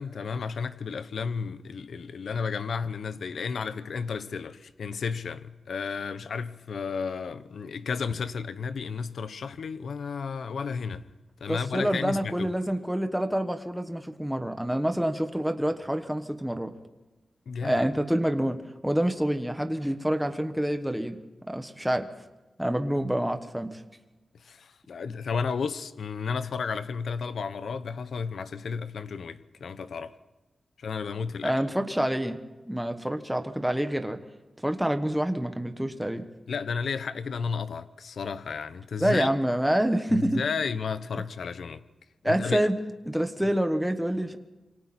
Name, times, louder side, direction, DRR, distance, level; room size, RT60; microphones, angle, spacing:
voice 1, 0.0-11.1 11.4-12.5 17.5-17.8 24.3-30.1 30.8-31.5 36.5-39.3 40.1-41.8 42.2-42.7, left 5 dB, 80° left, 0.9 m, -33 dB
voice 2, 11.5-16.7 17.6-18.6 18.8-21.2 21.5-22.1 22.6-23.8 31.4-32.4 32.6-34.2 34.6-36.2 39.0-40.4 42.2-42.7 43.1-44.4, right 1 dB, 5° right, 1.3 m, -27 dB
27.5 x 25.0 x 4.3 m
wide cardioid pair, 175°, 0 cm